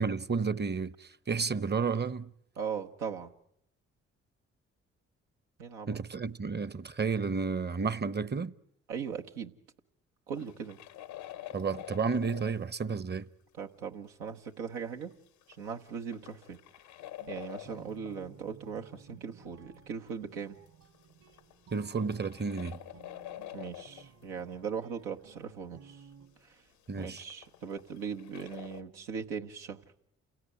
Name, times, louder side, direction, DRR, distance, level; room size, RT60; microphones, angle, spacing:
voice 1, 0.0-2.3 5.9-8.5 11.5-13.3 21.7-22.8 26.9-27.2, right 5 dB, 30° right, 0.9 m, -31 dB
voice 2, 2.6-3.3 5.6-6.0 8.9-9.5 10.3-10.8 13.6-15.1 15.6-16.6 17.3-20.6 23.5-26.1 26.4-26.5 27.0-29.8, right 6 dB, 85° right, 1.2 m, -39 dB
sound 1, 10.3-12.9 14.5-14.6 14.9-18.3 19.0-19.1 19.7-20.1 20.5-24.3 24.5-24.6 25.4-25.5 26.7-28.8, left 13 dB, 85° left, 1.1 m, -47 dB
Guitar, 17.2-26.3, right 6 dB, 65° right, 3.6 m, -57 dB
28.5 x 17.0 x 9.1 m
hypercardioid pair, 40°, 34 cm